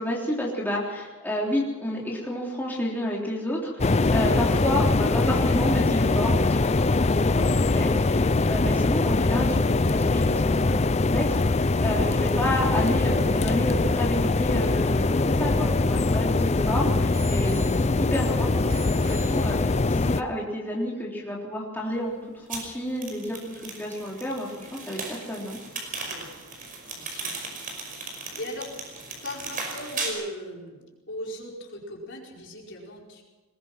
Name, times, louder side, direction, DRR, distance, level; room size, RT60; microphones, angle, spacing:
voice 1, 0.0-22.2 22.5-25.6, left 1 dB, 10° left, -4 dB, 3.7 m, -30 dB
sound 1, 3.8-20.2, left 3 dB, 30° left, 0.5 m, -22 dB
Bicycle bell, 17.1-18.3 18.7-19.9 20.7-20.8, equal, 15° right, 5.9 m, -45 dB
sound 2, 22.5-30.1, right 4 dB, 40° right, 5.6 m, -37 dB
voice 2, 26.8-27.6 27.8-28.7 29.2-33.2, left 1 dB, 60° left, -1 dB, 4.9 m, -39 dB
21.5 x 21.0 x 6.0 m, 1.2 s
head